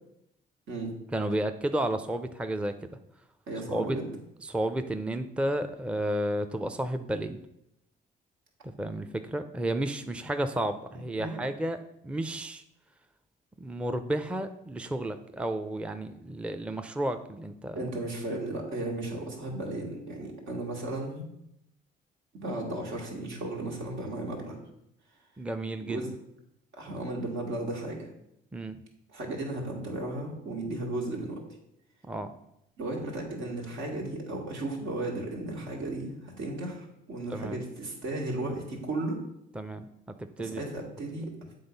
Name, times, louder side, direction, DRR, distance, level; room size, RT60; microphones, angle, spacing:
voice 1, 1.1-2.7 3.7-4.0 4.5-7.4 8.6-11.8 12.0-12.6 13.6-17.9 25.4-26.0 28.5-28.8 32.1-32.3 37.3-37.6 39.5-39.9 40.2-40.6, right 1 dB, 5° right, 8 dB, 0.4 m, -32 dB
voice 2, 3.5-4.1 11.2-11.4 17.8-21.3 22.3-24.6 25.8-26.1 26.8-28.1 29.1-31.4 32.8-39.2 40.4-41.6, right 2 dB, 80° right, -1 dB, 1.9 m, -35 dB
7.9 x 3.8 x 5.3 m, 0.80 s
cardioid pair, 90°, 20 cm